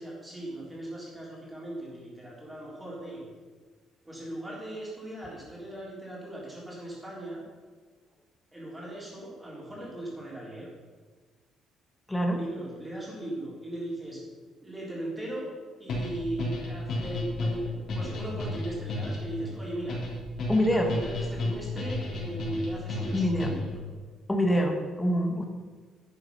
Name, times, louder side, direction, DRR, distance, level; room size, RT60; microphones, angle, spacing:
voice 1, 0.0-3.2 4.1-7.4 8.5-10.7 12.3-14.2 14.6-15.5 15.8-20.0 20.7-23.8, right 1 dB, 10° right, -4 dB, 3.7 m, -38 dB
sound 1, 15.9-23.8, left 2 dB, 50° left, 3.6 m, -33 dB
voice 2, 20.5-20.9 23.1-23.5 24.3-25.4, equal, 10° left, 2 dB, 1.5 m, -25 dB
11.0 x 8.8 x 5.5 m, 1.5 s
cardioid pair, 155°, 0 cm